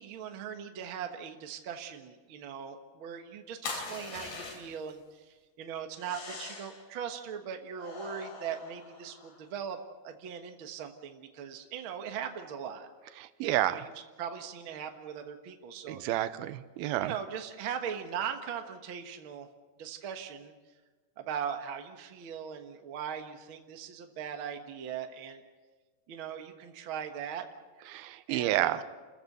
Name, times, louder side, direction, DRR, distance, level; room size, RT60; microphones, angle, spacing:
voice 1, 0.0-5.3 5.6-9.8 10.0-12.9 13.6-13.9 14.2-16.2 17.0-19.5 19.8-20.5 21.2-25.4 26.1-27.4 28.3-28.8, right 8 dB, 60° right, 5 dB, 1.4 m, -39 dB
sound 1, 3.6-4.9 5.9-6.8 7.8-9.4, left 4 dB, 85° left, 5.2 m, -42 dB
voice 2, 13.2-13.8 15.9-17.1 27.9-28.8, right 14 dB, 80° right, 13 dB, 2.7 m, -30 dB
29.0 x 14.5 x 6.7 m, 1.3 s
omnidirectional pair, 4.4 m